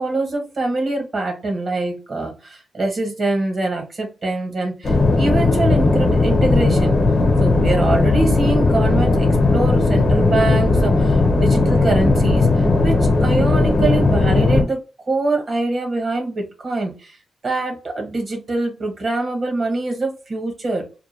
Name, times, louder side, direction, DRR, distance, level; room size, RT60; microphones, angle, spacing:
voice 1, 0.0-6.9 7.4-17.2 17.4-20.8, right 2 dB, 55° right, 2 dB, 1.1 m, -24 dB
sound 1, 4.8-14.6, left 3 dB, 60° left, 0.8 m, -16 dB
2.3 x 2.2 x 3.2 m, 0.33 s
cardioid pair, 70°, 0 cm